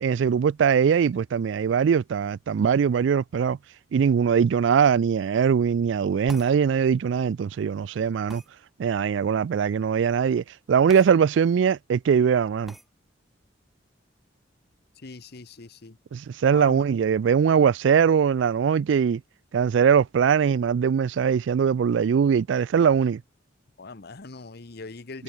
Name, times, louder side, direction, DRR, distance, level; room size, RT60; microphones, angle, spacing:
voice 1, 0.0-3.6 3.9-8.4 8.8-12.7 16.1-19.2 19.5-23.2, right 7 dB, 70° right, 0.3 m, -21 dB
sound 1, 6.3-6.6 8.3-8.5 10.9-11.1 11.5-11.6 12.7-12.9, equal, ahead, 2.9 m, -43 dB
voice 2, 15.0-16.0 16.5-16.8 23.8-25.2, left 3 dB, 55° left, 1.0 m, -41 dB
head